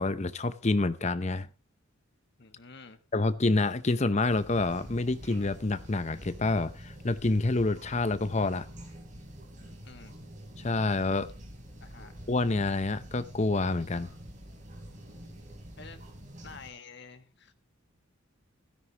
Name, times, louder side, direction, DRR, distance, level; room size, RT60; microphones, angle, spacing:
voice 1, 0.0-1.5 3.1-8.7 10.6-11.3 12.3-14.1, left 2 dB, 30° left, 0.7 m, -27 dB
voice 2, 2.4-3.0 9.8-10.3 11.8-12.2 15.8-16.0 16.4-17.5, left 5 dB, 50° left, 1.4 m, -49 dB
sound 1, 4.3-16.7, equal, 35° right, 4.0 m, -47 dB
16.0 x 13.0 x 2.9 m
head